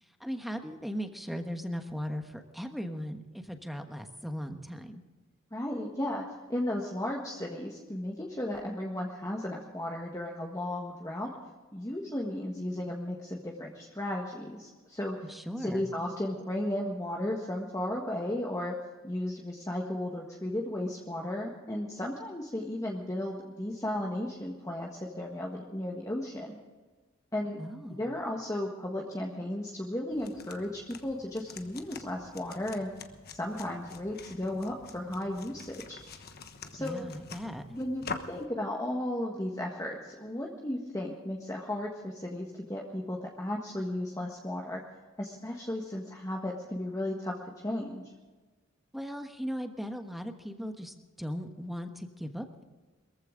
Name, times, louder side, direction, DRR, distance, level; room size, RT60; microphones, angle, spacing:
voice 1, 0.2-5.0 15.2-15.9 27.6-28.1 36.8-37.6 48.9-52.6, equal, ahead, 6 dB, 1.2 m, -38 dB
voice 2, 5.5-6.2 6.5-11.3 11.7-15.2 15.6-18.7 19.0-26.6 27.3-27.6 27.9-32.9 33.3-36.0 36.7-37.1 37.7-44.8 45.2-48.0, left 1 dB, 15° left, -1 dB, 1.5 m, -35 dB
sound 1, 30.1-38.5, left 4 dB, 50° left, 1.2 m, -46 dB
22.5 x 14.5 x 3.8 m, 1.3 s
head